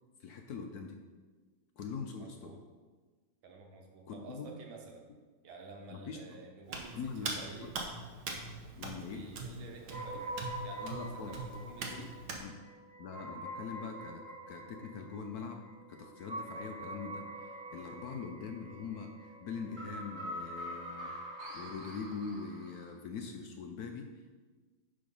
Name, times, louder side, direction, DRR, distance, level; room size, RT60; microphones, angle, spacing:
voice 1, 0.2-1.0 1.8-2.5 4.1-4.6 5.9-6.4 6.9-7.7 8.8-9.3 10.8-11.4 11.9-12.1 12.4-12.6 13.0-15.6 15.9-21.1 21.5-24.3, left 5 dB, 65° left, 4 dB, 1.0 m, -43 dB
voice 2, 2.2-2.6 3.4-5.0 5.4-7.1 7.4-7.7 9.1-10.3 10.6-12.1, right 3 dB, 85° right, 1 dB, 2.0 m, -50 dB
Hands, 6.7-12.4, right 3 dB, 60° right, 1.5 m, -42 dB
sound 1, 9.9-23.0, right 1 dB, 40° right, 1.2 m, -45 dB
10.5 x 3.9 x 5.4 m, 1.4 s
omnidirectional pair, 2.1 m